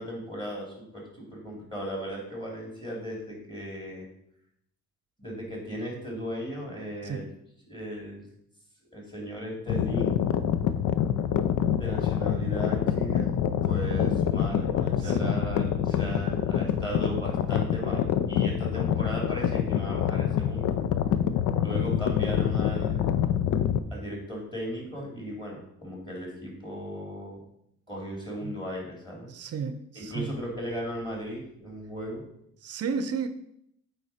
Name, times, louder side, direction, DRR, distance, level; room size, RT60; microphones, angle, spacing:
voice 1, 0.0-4.1 5.2-7.3 7.6-8.3 8.9-10.2 11.8-13.4 13.6-20.8 21.6-23.2 23.9-27.4 27.9-29.3 29.9-32.2, equal, 15° left, 2.9 m, -36 dB
sound 1, 9.7-23.8, left 9 dB, 80° left, 0.6 m, -26 dB
voice 2, 15.0-15.4 28.4-28.5 29.3-30.3 32.6-33.3, right 5 dB, 55° right, 0.6 m, -33 dB
8.1 x 4.7 x 4.3 m
cardioid pair, 90°, 30 cm